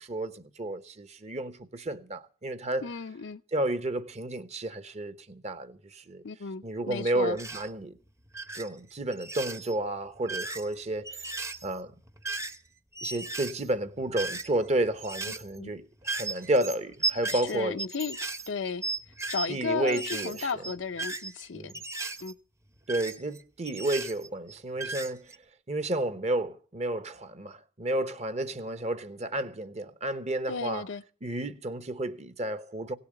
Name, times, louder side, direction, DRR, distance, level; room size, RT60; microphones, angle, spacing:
voice 1, 0.0-2.9 3.5-6.2 6.6-7.9 8.5-11.3 11.6-11.9 13.0-17.8 19.5-20.5 21.5-21.7 22.9-25.3 25.7-30.8 31.2-32.9, right 1 dB, 35° right, 1.0 m, -31 dB
voice 2, 2.8-3.4 6.2-7.4 15.3-15.7 17.3-18.2 18.5-18.8 19.3-21.7 22.2-22.3 30.5-31.0, left 5 dB, 75° left, 0.6 m, -34 dB
sound 1, 7.3-7.7 8.3-8.7 9.1-9.7 10.2-12.7 13.0-14.7 15.0-15.6 16.0-19.6 19.9-22.3 22.9-24.5 24.8-25.4, right 3 dB, 15° right, 0.8 m, -36 dB
17.0 x 7.0 x 8.9 m
head